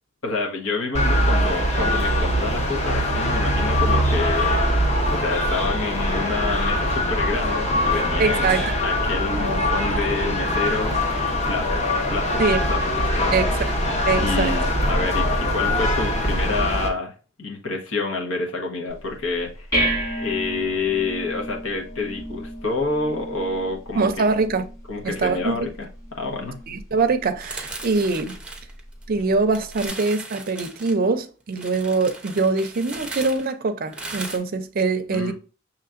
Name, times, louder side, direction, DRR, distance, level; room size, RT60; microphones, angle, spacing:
voice 1, 0.2-11.0 11.5-12.4 12.7-13.5 13.8-13.9 14.2-17.1 17.4-19.7 20.2-24.2 24.9-26.6 35.1-35.3, left 3 dB, 80° left, 1.2 m, -28 dB
sound 1, 0.9-16.9, left 1 dB, 35° left, 0.9 m, -22 dB
voice 2, 8.2-8.7 12.4-12.6 13.3-13.7 14.1-14.5 23.9-24.6 25.0-25.7 26.7-28.4 29.1-35.3, right 4 dB, 45° right, 0.5 m, -23 dB
sound 2, 18.9-29.9, right 1 dB, 15° left, 2.1 m, -33 dB
sound 3, 27.4-29.2 29.5-30.9 31.5-34.4, right 2 dB, 5° right, 0.6 m, -37 dB
5.8 x 3.1 x 2.5 m
head